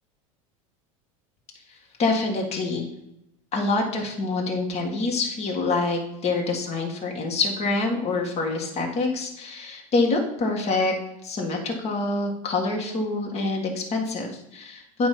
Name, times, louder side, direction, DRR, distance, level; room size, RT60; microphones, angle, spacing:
voice 1, 2.0-2.9 3.5-10.9 11.2-15.1, left 3 dB, 40° left, 1 dB, 1.8 m, -26 dB
8.8 x 3.2 x 5.9 m, 0.84 s
hypercardioid pair, 90°, 18 cm